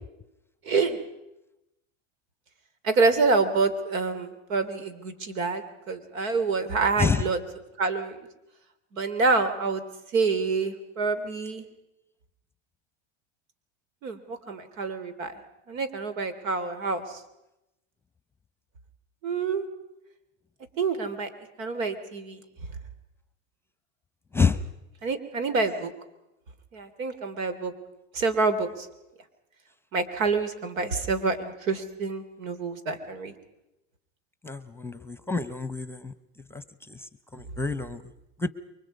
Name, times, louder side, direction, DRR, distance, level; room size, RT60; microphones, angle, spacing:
voice 1, 0.6-1.0 2.8-7.4 7.8-8.2 8.9-9.8 10.1-11.6 14.0-15.3 15.7-17.0 19.2-19.7 20.8-21.3 21.6-22.4 25.0-25.9 26.7-27.7 28.1-28.9 29.9-33.3, right 4 dB, 85° right, 11 dB, 3.2 m, -27 dB
voice 2, 34.4-36.1 36.5-36.6 36.9-37.0 37.3-38.0 38.4-38.5, left 5 dB, 5° left, 14 dB, 0.9 m, -27 dB
29.0 x 23.5 x 5.4 m, 0.90 s
supercardioid pair, 115°, 39 cm